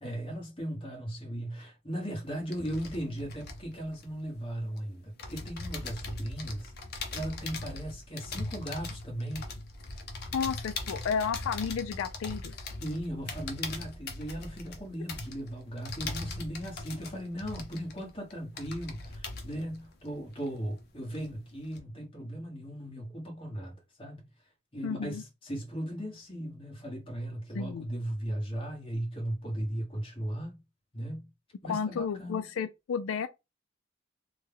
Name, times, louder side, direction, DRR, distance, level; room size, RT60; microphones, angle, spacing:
voice 1, 0.0-6.7 7.1-9.5 12.8-24.3 24.7-30.6 30.9-31.3 31.6-32.5, equal, 25° left, 1.4 m, -37 dB
sound 1, 2.1-4.8 5.2-20.9 21.1-21.8, left 3 dB, 55° left, 0.7 m, -40 dB
voice 2, 10.3-12.8 24.8-25.2 27.5-27.9 31.7-33.3, left 6 dB, 90° left, 0.3 m, -32 dB
3.2 x 2.2 x 3.4 m
head